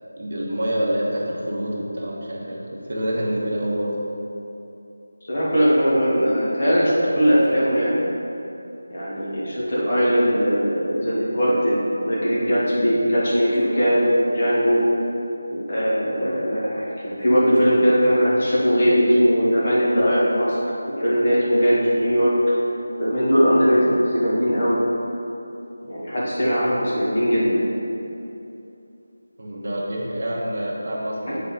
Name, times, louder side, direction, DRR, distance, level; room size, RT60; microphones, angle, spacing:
voice 1, 0.2-4.0 29.4-31.4, right 1 dB, 50° right, -4 dB, 1.0 m, -27 dB
voice 2, 5.3-8.0 8.9-14.8 15.5-20.6 21.0-22.3 23.0-24.8 25.9-27.6 31.2-31.3, equal, 30° left, -8 dB, 1.4 m, -20 dB
8.0 x 3.8 x 3.9 m, 2.8 s
figure-of-eight pair, 175°, 0 cm